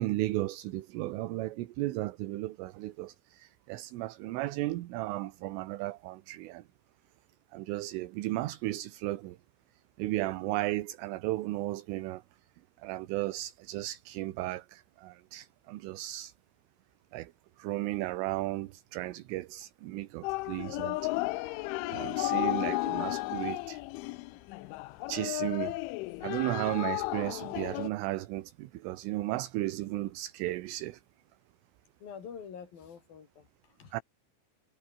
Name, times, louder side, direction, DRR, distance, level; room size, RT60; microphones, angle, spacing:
voice 1, 0.0-6.6 7.5-9.4 10.0-12.2 12.8-16.3 17.1-17.3 17.6-21.6 21.9-23.8 25.1-25.8 26.2-31.0 33.9-34.0, right 17 dB, 80° right, 3.7 m, -35 dB
sound 1, 20.2-27.9, left 21 dB, 80° left, 2.9 m, -33 dB
voice 2, 32.0-34.0, left 7 dB, 50° left, 5.2 m, -47 dB
omnidirectional pair, 5.9 m